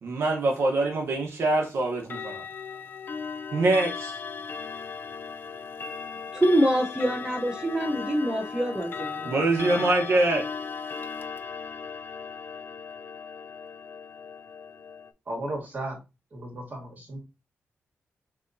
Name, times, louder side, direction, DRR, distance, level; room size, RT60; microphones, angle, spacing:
voice 1, 0.0-2.4 3.5-4.2 9.3-10.4, right 2 dB, 60° right, 0.9 m, -24 dB
Clock, 2.0-15.1, left 6 dB, 45° left, 0.4 m, -37 dB
voice 2, 6.3-9.9, right 1 dB, 15° right, 0.6 m, -26 dB
voice 3, 15.3-16.0 16.3-17.2, right 1 dB, 35° right, 1.9 m, -34 dB
6.1 x 2.9 x 2.6 m
wide cardioid pair, 180°, 5 cm